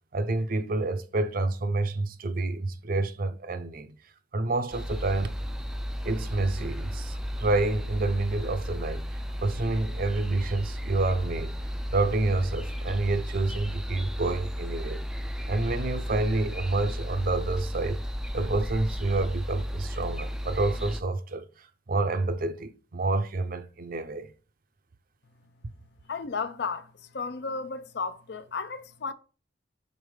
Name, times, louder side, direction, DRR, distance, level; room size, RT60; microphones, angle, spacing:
voice 1, 0.1-3.9 4.3-5.3 6.0-9.0 9.4-11.6 11.9-15.0 15.5-18.0 18.3-21.5 21.9-24.3, right 2 dB, 50° right, 0.6 m, -28 dB
sound 1, 4.7-21.0, equal, 5° right, 0.3 m, -34 dB
voice 2, 26.1-29.1, left 4 dB, 65° left, 0.5 m, -34 dB
5.3 x 4.0 x 4.7 m
head